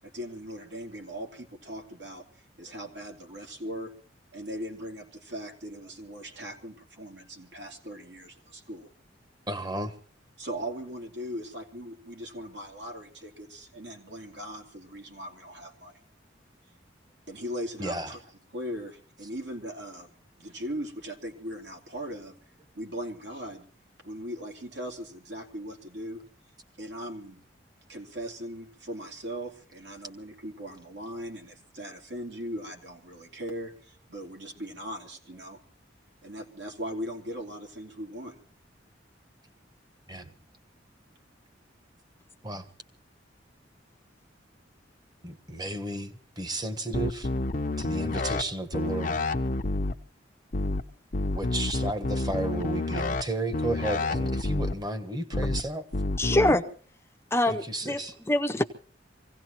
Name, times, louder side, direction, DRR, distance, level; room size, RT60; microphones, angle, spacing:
voice 1, 0.0-2.2 2.6-3.9 4.3-8.9 10.4-16.0 17.3-18.2 18.5-20.1 20.4-22.4 22.7-23.6 24.0-26.2 26.8-27.4 27.9-35.6 36.2-38.4, equal, 70° right, 1 dB, 3.0 m, -39 dB
voice 2, 9.5-9.9 17.8-18.1 40.1-40.3 42.4-42.6 45.2-47.3 47.8-49.2 51.3-55.8 57.5-58.1, right 2 dB, 20° right, 9 dB, 1.3 m, -33 dB
sound 1, 46.9-48.4 48.7-49.9 50.5-50.8 51.1-53.2 53.5-54.7 55.3-55.6 55.9-56.5, left 2 dB, 45° left, 0.8 m, -28 dB
voice 3, 56.2-56.6 57.3-58.6, left 1 dB, 15° left, 6 dB, 0.8 m, -24 dB
25.5 x 17.0 x 3.0 m, 0.43 s
head